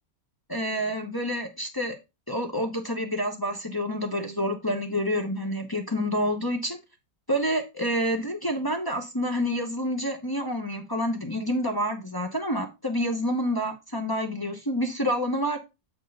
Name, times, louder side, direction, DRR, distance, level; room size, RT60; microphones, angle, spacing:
voice 1, 0.5-2.0 2.3-6.8 7.3-15.6, equal, 20° left, 0.6 m, -28 dB
8.1 x 4.5 x 4.1 m
omnidirectional pair, 1.9 m